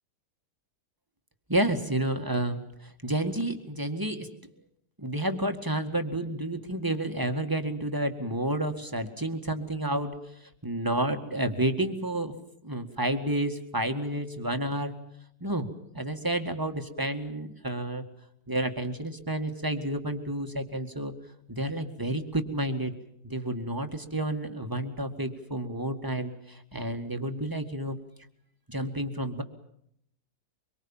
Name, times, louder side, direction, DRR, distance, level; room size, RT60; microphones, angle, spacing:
voice 1, 1.5-2.6 3.0-4.3 5.0-10.1 10.6-12.4 12.6-15.0 15.4-18.0 18.5-21.1 21.5-22.9 23.2-28.0 28.7-29.4, right 1 dB, 10° right, 6 dB, 2.0 m, -30 dB
24.5 x 24.0 x 7.3 m, 0.74 s
omnidirectional pair, 1.8 m